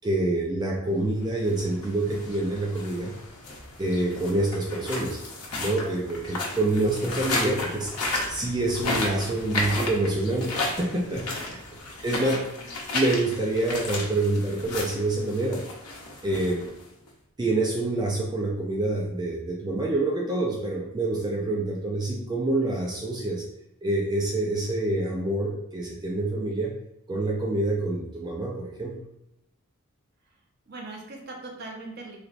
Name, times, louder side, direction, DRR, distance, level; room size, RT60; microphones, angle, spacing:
voice 1, 0.0-3.2 3.8-5.2 5.5-7.9 8.3-11.6 12.0-12.4 12.9-15.6 16.2-16.6 17.4-23.4 23.8-26.7 27.1-29.0, right 2 dB, 20° right, -2 dB, 0.3 m, -27 dB
sound 1, 1.4-17.1, left 2 dB, 90° left, 0.7 m, -33 dB
voice 2, 12.0-12.4 30.7-32.2, right 2 dB, 45° right, -1 dB, 0.7 m, -40 dB
3.2 x 3.0 x 2.5 m, 0.82 s
head